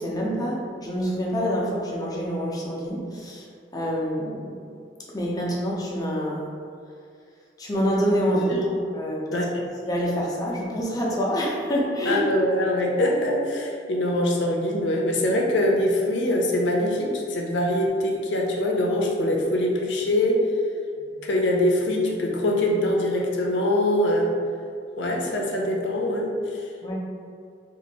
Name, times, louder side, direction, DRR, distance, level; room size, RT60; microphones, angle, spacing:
voice 1, 0.0-3.5 3.7-4.6 5.1-6.5 7.6-12.3 21.0-21.1 26.8-26.9, equal, 20° left, -4 dB, 0.6 m, -27 dB
voice 2, 12.1-20.4 21.2-24.3 25.0-26.7, left 1 dB, 85° left, 0 dB, 0.6 m, -23 dB
2.7 x 2.5 x 4.1 m, 2.3 s
head